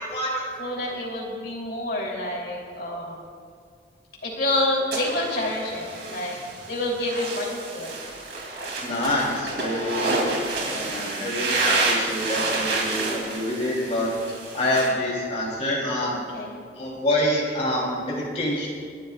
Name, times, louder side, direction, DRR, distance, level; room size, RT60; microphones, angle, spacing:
voice 1, 0.0-0.4 8.8-10.2 10.7-16.2 16.7-18.7, left 1 dB, 35° left, -4 dB, 3.3 m, -26 dB
voice 2, 0.6-3.2 4.2-6.4 6.7-7.9 10.7-11.3 16.1-16.6, left 1 dB, 55° left, -3 dB, 3.0 m, -28 dB
sound 1, 4.9-14.9, right 2 dB, 65° right, 2.7 m, -29 dB
28.0 x 11.5 x 2.4 m, 2.1 s
head